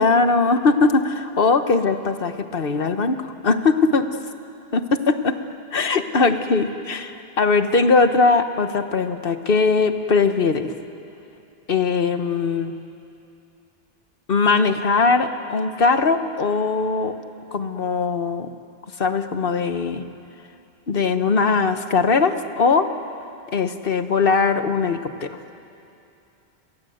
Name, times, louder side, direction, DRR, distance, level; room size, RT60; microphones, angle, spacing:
voice 1, 0.0-4.1 4.7-4.8 5.1-5.3 5.7-10.7 11.7-12.8 14.3-17.1 17.5-18.5 19.0-20.0 20.9-22.9 23.5-25.4, left 4 dB, 60° left, 9 dB, 1.3 m, -20 dB
29.5 x 22.0 x 7.9 m, 2.7 s
omnidirectional pair, 1.1 m